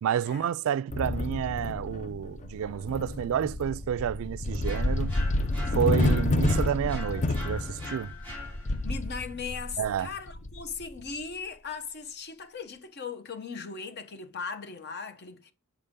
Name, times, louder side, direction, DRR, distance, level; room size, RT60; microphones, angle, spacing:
voice 1, 0.0-5.1 5.7-8.1 9.8-10.1, right 9 dB, 65° right, 0.3 m, -30 dB
sound 1, 0.9-11.1, left 2 dB, 35° left, 0.5 m, -29 dB
sound 2, 4.6-9.0, left 2 dB, 10° left, 3.6 m, -43 dB
voice 2, 8.8-15.5, left 5 dB, 50° left, 0.9 m, -38 dB
6.7 x 4.9 x 3.6 m
head